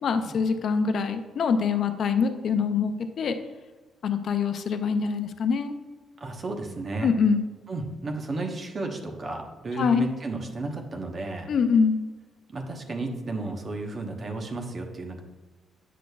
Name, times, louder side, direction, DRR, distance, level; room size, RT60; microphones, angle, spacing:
voice 1, 0.0-2.9 3.2-3.4 4.0-5.7 7.0-7.4 9.8-10.1 11.5-12.0, left 5 dB, 60° left, 8 dB, 0.6 m, -24 dB
voice 2, 6.2-7.1 7.7-11.5 12.5-15.2, right 2 dB, 40° right, 2 dB, 1.0 m, -33 dB
8.2 x 6.1 x 2.3 m, 1.2 s
cardioid pair, 90°, 0 cm